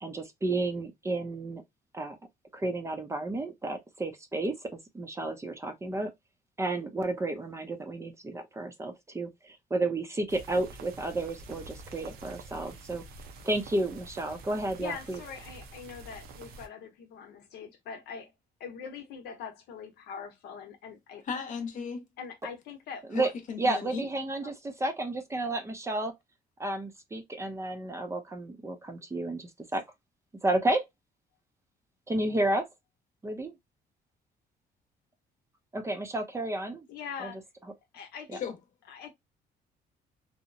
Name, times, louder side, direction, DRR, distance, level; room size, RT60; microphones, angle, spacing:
voice 1, 0.0-1.6 1.9-2.2 2.5-6.1 6.6-13.0 13.4-15.2 23.1-23.3 23.6-26.2 26.6-29.8 30.4-30.8 32.1-32.7 33.2-33.5 35.7-36.9 37.2-37.3 38.3-38.4, right 2 dB, 15° right, 0.4 m, -32 dB
sound 1, 10.3-16.7, right 3 dB, 75° right, 0.6 m, -47 dB
voice 2, 14.8-18.3 18.6-21.2 22.2-23.3 24.4-24.5 36.9-37.4 37.9-38.4 38.9-39.1, left 6 dB, 85° left, 0.7 m, -42 dB
voice 3, 21.3-22.1 23.1-24.1 38.3-38.6, left 6 dB, 50° left, 0.8 m, -36 dB
2.8 x 2.0 x 2.5 m
cardioid pair, 120°, 16 cm